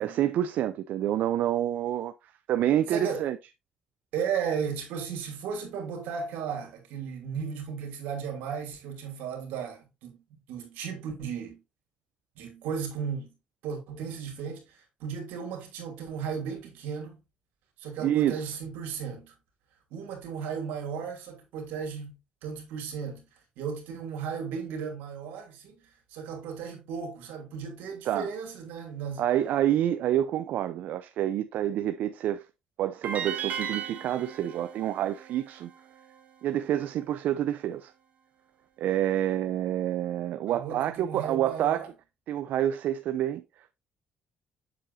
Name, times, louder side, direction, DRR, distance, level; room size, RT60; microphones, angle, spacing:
voice 1, 0.0-2.1 2.5-3.4 18.0-18.5 28.1-28.3 29.2-32.4 32.8-35.7 36.4-37.9 38.8-41.8 42.3-43.4, right 11 dB, 70° right, 0.5 m, -28 dB
voice 2, 2.9-3.2 4.1-11.6 12.4-13.3 13.6-17.2 17.8-19.3 19.9-22.1 22.4-23.2 23.6-25.8 26.1-29.2 40.5-41.9, right 6 dB, 90° right, 2.7 m, -35 dB
sound 1, 33.0-36.2, right 8 dB, 55° right, 1.8 m, -37 dB
7.6 x 6.9 x 2.6 m
cardioid pair, 100°, 3 cm